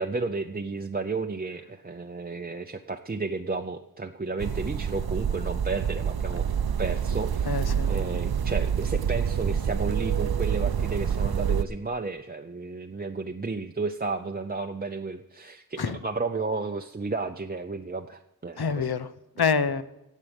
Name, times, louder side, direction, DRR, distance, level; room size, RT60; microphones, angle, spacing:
voice 1, 0.0-6.5 6.8-7.6 7.9-18.9, right 3 dB, 25° right, 5 dB, 0.5 m, -32 dB
sound 1, 4.4-11.6, right 8 dB, 75° right, 0.6 m, -27 dB
voice 2, 7.5-7.9 15.8-16.0 18.6-19.8, left 5 dB, 85° left, 13 dB, 0.7 m, -27 dB
17.5 x 7.5 x 5.2 m, 0.92 s
wide cardioid pair, 65°, 37 cm